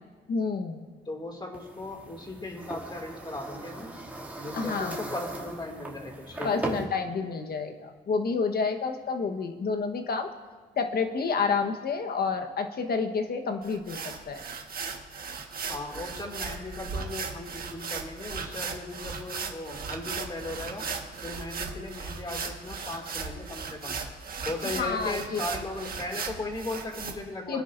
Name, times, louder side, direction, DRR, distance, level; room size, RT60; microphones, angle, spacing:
voice 1, 0.3-0.9 4.5-5.0 6.4-10.3 10.8-14.0 14.3-14.4 24.8-25.4 27.5-27.6, left 5 dB, 50° left, 5 dB, 1.3 m, -29 dB
voice 2, 1.1-3.9 4.4-6.7 15.7-20.9 21.2-24.0 24.4-27.6, left 2 dB, 20° left, 2 dB, 2.5 m, -37 dB
sound 1, 1.5-6.8, right 2 dB, 10° right, 2.6 m, -38 dB
sound 2, 13.6-27.1, right 5 dB, 50° right, 1.6 m, -37 dB
24.5 x 10.0 x 2.6 m, 1.5 s
cardioid pair, 90°, 20 cm